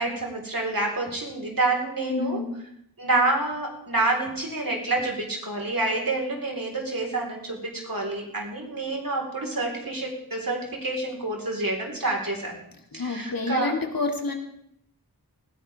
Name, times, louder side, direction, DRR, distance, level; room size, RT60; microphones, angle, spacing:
voice 1, 0.0-2.4 3.0-12.6 12.9-13.7, right 2 dB, 60° right, 0 dB, 4.2 m, -28 dB
voice 2, 2.1-2.5 12.9-14.3, left 3 dB, 60° left, 2 dB, 2.4 m, -28 dB
19.5 x 15.0 x 3.5 m, 0.73 s
wide cardioid pair, 45°, 38 cm